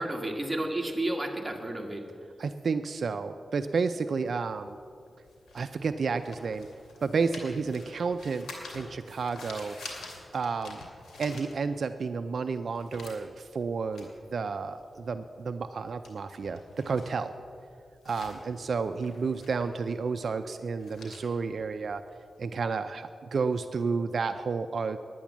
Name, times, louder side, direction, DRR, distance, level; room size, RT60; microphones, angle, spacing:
voice 1, 0.0-2.0, right 1 dB, 15° right, 1 dB, 1.7 m, -31 dB
voice 2, 2.4-4.8 5.5-6.7 7.0-9.8 10.3-10.8 11.2-17.3 18.1-22.0 22.4-25.0, right 5 dB, 65° right, 9 dB, 0.4 m, -31 dB
sound 1, 4.3-12.0 12.4-22.4, left 2 dB, 90° left, 2.3 m, -48 dB
10.5 x 9.2 x 7.2 m, 2.3 s
cardioid pair, 85°, 0 cm